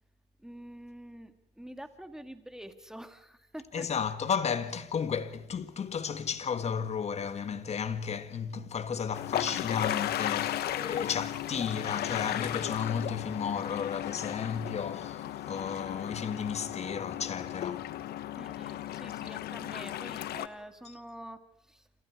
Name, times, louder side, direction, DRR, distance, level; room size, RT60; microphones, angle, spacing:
voice 1, 0.4-3.9 18.3-21.9, right 1 dB, 5° right, 2.3 m, -47 dB
voice 2, 3.7-17.9, left 7 dB, 40° left, 1.7 m, -33 dB
sound 1, 9.1-20.5, left 12 dB, 70° left, 1.2 m, -35 dB
28.0 x 27.0 x 4.9 m
cardioid pair, 110°, 17 cm